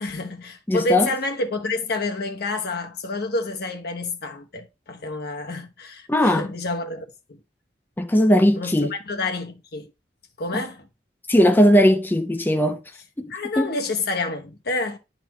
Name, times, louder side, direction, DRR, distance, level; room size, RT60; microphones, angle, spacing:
voice 1, 0.0-7.4 8.5-9.9 10.4-10.9 13.3-15.0, left 2 dB, 60° left, 1.0 m, -28 dB
voice 2, 0.7-1.1 6.1-6.5 8.0-8.9 10.5-10.6 11.3-12.8 13.2-13.7, equal, 10° left, 0.5 m, -18 dB
10.5 x 4.1 x 3.0 m
head